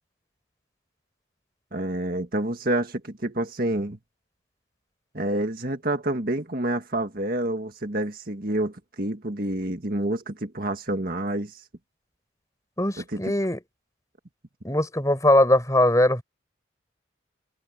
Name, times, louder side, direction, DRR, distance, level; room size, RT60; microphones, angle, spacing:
voice 1, 1.7-4.0 5.1-11.6 13.0-13.2, right 1 dB, 50° right, 1.9 m, -28 dB
voice 2, 12.8-13.6 14.6-16.2, left 1 dB, 15° left, 6.9 m, -20 dB
head